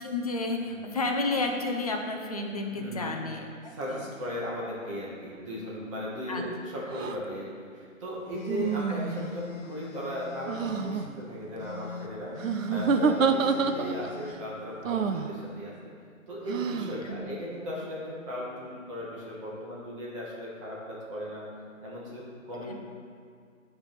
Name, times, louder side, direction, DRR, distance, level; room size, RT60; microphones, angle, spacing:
voice 1, 0.0-4.0 6.3-6.4 8.9-9.0 17.0-17.2, left 2 dB, 30° left, 2 dB, 0.5 m, -31 dB
voice 2, 2.7-3.2 3.6-15.9 16.3-21.5 21.8-22.7, equal, 25° right, -6 dB, 1.3 m, -37 dB
sound 1, 6.9-7.2 8.5-9.4 10.5-11.0 12.4-14.1 14.8-15.3 16.5-17.0, right 6 dB, 70° right, 0.6 m, -27 dB
sound 2, 8.3-11.1 11.6-14.4, left 7 dB, 80° left, 0.7 m, -43 dB
9.7 x 3.4 x 5.8 m, 2.1 s
hypercardioid pair, 155°, 41 cm